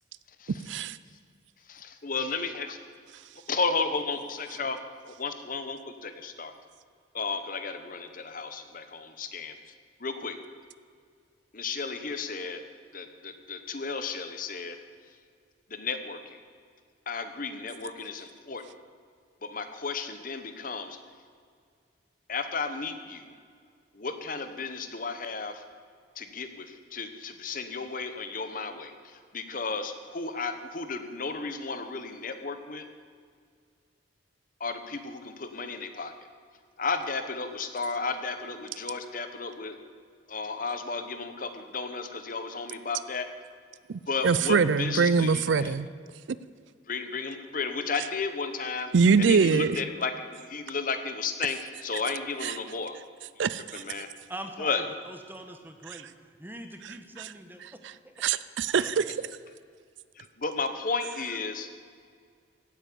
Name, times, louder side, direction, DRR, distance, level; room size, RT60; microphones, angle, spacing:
voice 1, 0.6-1.0 43.9-45.9 48.9-49.8 52.4-52.6 53.4-54.0 57.2-57.3 58.2-59.0, right 5 dB, 70° right, 16 dB, 0.4 m, -24 dB
voice 2, 1.7-2.7 3.5-4.8 5.1-6.5 7.1-9.6 10.0-10.4 11.5-12.6 12.9-14.8 15.7-16.4 17.1-18.6 19.4-21.0 22.3-23.3 23.9-25.6 26.2-32.8 34.6-36.1 36.8-39.8 40.3-43.3 44.1-45.7 46.9-48.9 49.2-53.0 53.7-54.1 54.6-54.8 60.2-61.7, left 4 dB, 45° left, 8 dB, 1.0 m, -33 dB
voice 3, 54.3-57.6 58.0-58.1 58.7-59.0, right 1 dB, 10° right, 6 dB, 1.1 m, -43 dB
16.5 x 8.6 x 6.9 m, 2.1 s
head